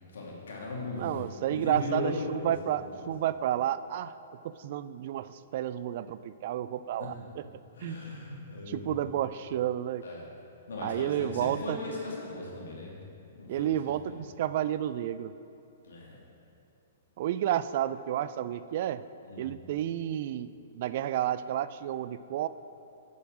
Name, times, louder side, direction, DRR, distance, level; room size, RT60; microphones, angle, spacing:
voice 1, 0.1-2.5 2.8-3.1 7.0-7.1 7.8-9.0 10.0-10.3 10.7-12.9 13.4-14.1 15.8-16.2 19.2-19.5, left 2 dB, 80° left, -3 dB, 2.5 m, -38 dB
voice 2, 1.0-4.1 4.4-7.4 7.8-8.0 8.7-10.0 10.8-11.8 13.5-15.3 17.2-19.0 19.4-22.5, right 11 dB, 55° right, 14 dB, 0.3 m, -31 dB
9.5 x 5.6 x 6.0 m, 2.7 s
hypercardioid pair, 125°, 0 cm